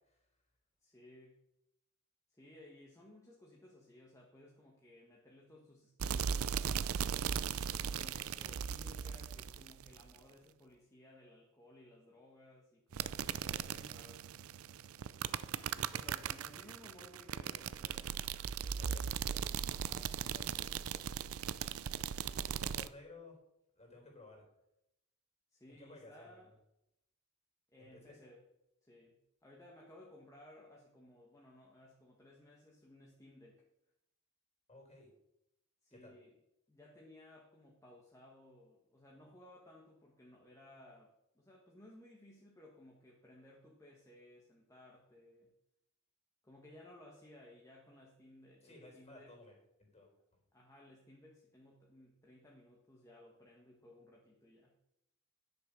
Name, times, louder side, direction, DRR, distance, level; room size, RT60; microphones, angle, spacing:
voice 1, 0.8-1.4 2.3-7.2 7.9-14.3 15.7-18.1 18.6-21.4 25.5-26.5 27.7-28.4 28.8-33.6 35.8-36.3 36.7-45.5 46.4-49.4 50.5-54.8, left 1 dB, 15° left, -2 dB, 1.6 m, -59 dB
sound 1, 6.0-10.2 12.9-22.9, right 8 dB, 90° right, 0.5 m, -38 dB
voice 2, 18.8-19.2 22.0-23.3 23.8-24.4 25.8-26.5 27.8-28.0 34.7-35.1 35.9-36.2 48.6-50.4, left 2 dB, 30° left, 0 dB, 4.0 m, -57 dB
11.0 x 6.8 x 6.2 m, 0.83 s
head